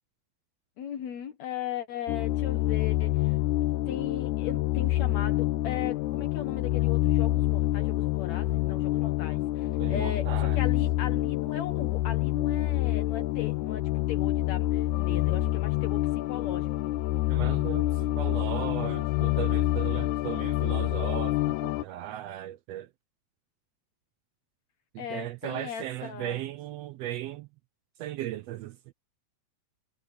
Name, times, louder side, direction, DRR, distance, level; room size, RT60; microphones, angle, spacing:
voice 1, 0.8-3.4 3.9-16.7 25.0-26.4, left 9 dB, 70° left, 2.5 m, -38 dB
sound 1, 2.1-21.8, left 16 dB, 85° left, 2.1 m, -27 dB
voice 2, 9.8-10.6 17.3-22.9 24.9-27.5 28.0-28.8, right 13 dB, 75° right, 1.5 m, -37 dB
omnidirectional pair, 3.4 m